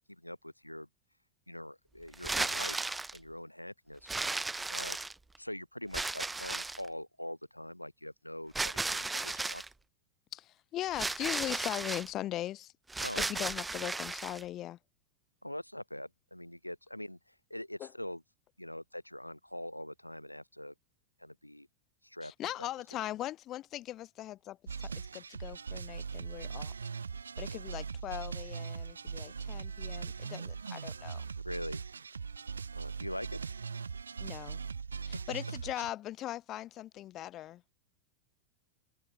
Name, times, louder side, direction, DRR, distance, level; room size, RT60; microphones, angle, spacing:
voice 1, 0.1-0.9 1.5-4.1 4.7-5.0 5.4-9.6 13.0-13.4 15.4-18.2 18.6-20.7 21.2-21.7 22.0-22.7 27.5-27.8 31.4-31.8 32.7-33.4 35.0-35.2, left 1 dB, 90° left, 5.7 m, -43 dB
sound 1, 2.1-3.2 4.1-5.4 5.9-6.9 8.5-9.7 10.9-12.1 12.9-14.4, right 3 dB, 10° right, 0.9 m, -35 dB
voice 2, 10.3-12.7 13.3-14.8 17.8-17.9 22.2-26.7 27.4-31.2 34.2-34.6 35.0-37.6, left 13 dB, 35° left, 1.9 m, -40 dB
sound 2, 24.7-35.9, right 5 dB, 75° right, 5.7 m, -40 dB
open air
figure-of-eight pair, 90°, 0 cm